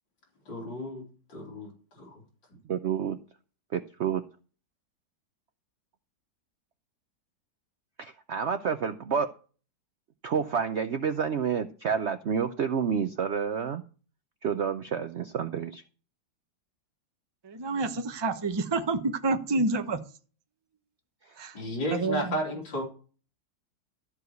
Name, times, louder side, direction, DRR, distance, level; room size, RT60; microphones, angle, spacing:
voice 1, 0.5-1.7 2.0-2.2 21.5-22.8, equal, 85° left, -2 dB, 4.1 m, -33 dB
voice 2, 2.7-3.2 3.7-4.2 8.0-9.3 10.2-13.8 14.4-15.8, right 7 dB, 80° right, 10 dB, 0.6 m, -29 dB
voice 3, 17.4-20.0 21.4-21.5 21.9-22.3, right 3 dB, 20° right, 7 dB, 0.7 m, -28 dB
13.5 x 4.8 x 8.0 m, 0.39 s
omnidirectional pair, 2.0 m